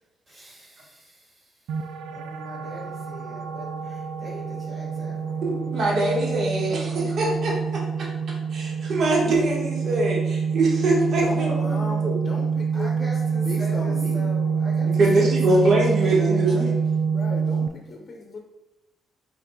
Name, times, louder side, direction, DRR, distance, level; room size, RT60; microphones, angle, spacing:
voice 1, 0.3-0.7 1.1-1.7 2.1-5.8 12.7-16.8, right 1 dB, 45° right, -6 dB, 1.6 m, -40 dB
sound 1, 1.7-17.7, right 6 dB, 80° right, 0.3 m, -26 dB
voice 2, 5.4-8.1 8.5-12.2 14.8-16.7, right 2 dB, 60° right, -4 dB, 1.5 m, -23 dB
voice 3, 11.2-14.3 17.1-18.4, left 3 dB, 45° left, 0 dB, 0.7 m, -36 dB
5.1 x 4.6 x 2.3 m, 0.93 s
cardioid pair, 90°, 0 cm